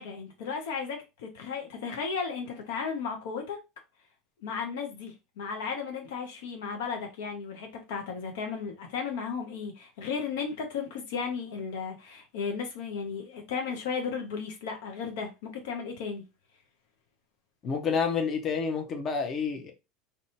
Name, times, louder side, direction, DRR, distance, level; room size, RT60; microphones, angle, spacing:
voice 1, 0.0-3.6 4.4-16.2, left 5 dB, 75° left, 0.6 m, -35 dB
voice 2, 17.6-19.7, left 5 dB, 40° left, 0.7 m, -29 dB
2.7 x 2.2 x 2.7 m
hypercardioid pair, 90°, 0 cm